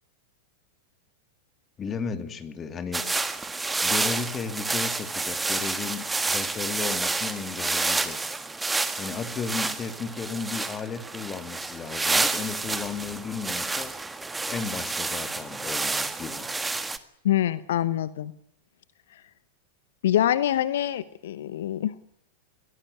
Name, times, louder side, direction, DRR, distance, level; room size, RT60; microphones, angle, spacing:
voice 1, 1.8-3.0 3.8-8.4 9.0-13.9 14.5-16.5, left 5 dB, 25° left, 9 dB, 2.7 m, -34 dB
sound 1, 2.9-17.0, right 3 dB, 10° right, 1.8 m, -29 dB
voice 2, 17.2-18.3 20.0-21.9, left 12 dB, 60° left, 16 dB, 1.0 m, -25 dB
22.5 x 18.0 x 9.5 m, 0.74 s
figure-of-eight pair, 90°, 0 cm